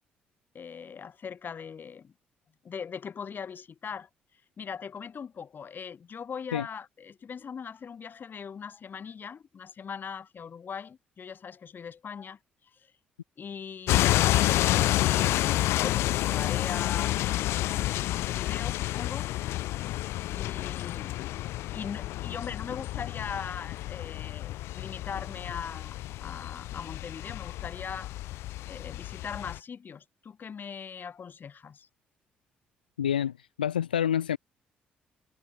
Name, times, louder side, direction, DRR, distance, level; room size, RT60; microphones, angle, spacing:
voice 1, 0.5-2.1 2.6-4.1 4.6-12.4 12.7-12.9 13.4-14.3 14.9-19.3 20.3-21.1 21.7-28.1 28.7-31.9, left 6 dB, 45° left, 5.1 m, -40 dB
sound 1, 13.9-29.6, left 16 dB, 60° left, 0.9 m, -29 dB
voice 2, 33.0-34.4, left 9 dB, 80° left, 1.1 m, -28 dB
figure-of-eight pair, 45°, 5 cm